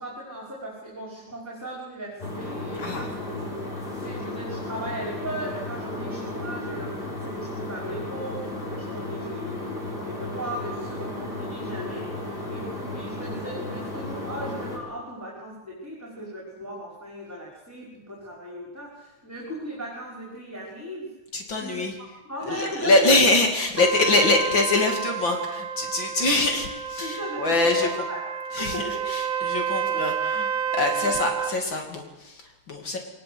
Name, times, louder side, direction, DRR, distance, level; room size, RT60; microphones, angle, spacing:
voice 1, 0.0-3.5 4.0-6.9 7.2-21.1 21.6-21.9 22.3-23.2 27.0-28.2 28.6-29.0 31.0-31.1, right 1 dB, 5° right, -4 dB, 5.4 m, -37 dB
sound 1, 2.2-14.8, left 2 dB, 25° left, 5.6 m, -34 dB
voice 2, 21.3-22.0 22.4-27.9 28.5-33.0, left 2 dB, 70° left, 2 dB, 3.4 m, -24 dB
Trumpet, 23.8-31.6, right 8 dB, 75° right, 1.9 m, -30 dB
23.5 x 20.0 x 8.0 m, 1.0 s
omnidirectional pair, 2.2 m